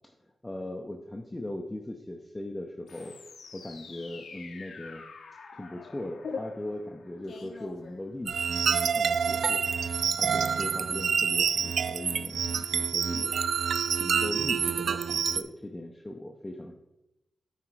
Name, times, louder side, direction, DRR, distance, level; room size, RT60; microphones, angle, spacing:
voice 1, 0.4-3.2 3.5-5.0 5.5-9.7 10.2-13.3 13.6-13.7 14.0-16.7, left 1 dB, 15° left, 3 dB, 0.5 m, -39 dB
sound 1, 2.9-8.5, left 4 dB, 80° left, 0.8 m, -44 dB
sound 2, 8.3-15.4, right 6 dB, 85° right, 0.3 m, -27 dB
9.6 x 4.2 x 4.7 m, 0.94 s
wide cardioid pair, 140°, 0 cm